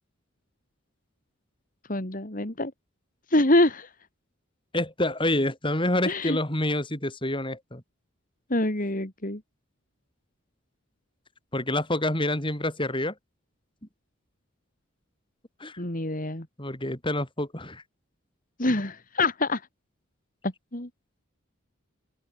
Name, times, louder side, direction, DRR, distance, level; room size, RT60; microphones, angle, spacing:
voice 1, 1.9-2.7 3.3-3.9 6.1-6.4 8.5-9.4 15.8-16.5 18.6-19.6 20.7-20.9, left 2 dB, 40° left, 2.9 m, -25 dB
voice 2, 4.7-7.8 11.5-13.1 15.6-15.8 16.6-17.8, left 1 dB, 25° left, 6.3 m, -27 dB
open air
head